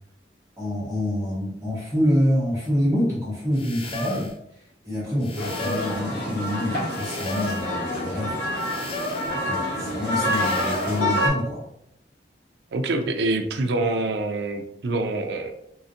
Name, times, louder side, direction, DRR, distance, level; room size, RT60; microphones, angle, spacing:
voice 1, 0.6-8.4 9.3-11.6, left 1 dB, 15° right, -10 dB, 1.2 m, -26 dB
sound 1, 2.6-2.7 3.5-4.4 5.2-6.0 6.9-7.7 8.5-9.4 10.2-11.0, left 2 dB, 30° left, 0.4 m, -34 dB
sound 2, 5.4-11.3, left 1 dB, 85° left, 1.3 m, -27 dB
voice 2, 12.7-15.5, right 2 dB, 80° right, 6 dB, 0.5 m, -25 dB
3.8 x 2.5 x 2.7 m, 0.76 s
head